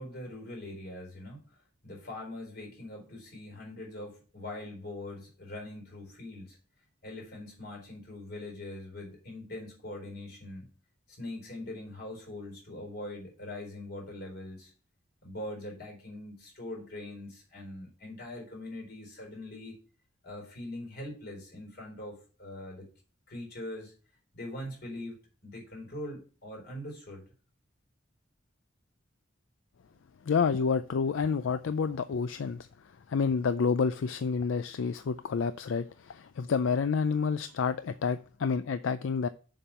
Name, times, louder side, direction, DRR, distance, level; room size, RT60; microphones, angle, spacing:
voice 1, 0.0-6.6 7.0-10.7 11.1-14.7 15.2-19.8 20.2-22.9 23.3-23.9 24.3-27.3 29.9-30.0, left 1 dB, 55° left, 4.1 m, -42 dB
voice 2, 30.3-32.7 33.1-39.3, left 5 dB, 80° left, 0.4 m, -29 dB
7.1 x 5.3 x 5.8 m
head